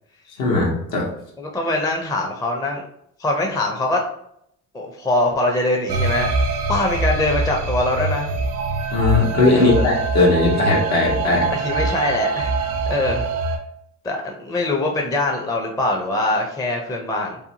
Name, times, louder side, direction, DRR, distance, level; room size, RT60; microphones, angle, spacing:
voice 1, 0.4-1.1 8.9-11.5, left 3 dB, 75° left, -2 dB, 1.0 m, -18 dB
voice 2, 1.4-2.8 3.2-4.0 4.7-8.3 9.5-9.9 11.5-13.3 14.0-17.4, left 2 dB, 10° left, 1 dB, 0.4 m, -23 dB
sound 1, 5.9-13.6, right 3 dB, 75° right, 0.6 m, -24 dB
2.7 x 2.2 x 2.7 m, 0.73 s
supercardioid pair, 65°, 37 cm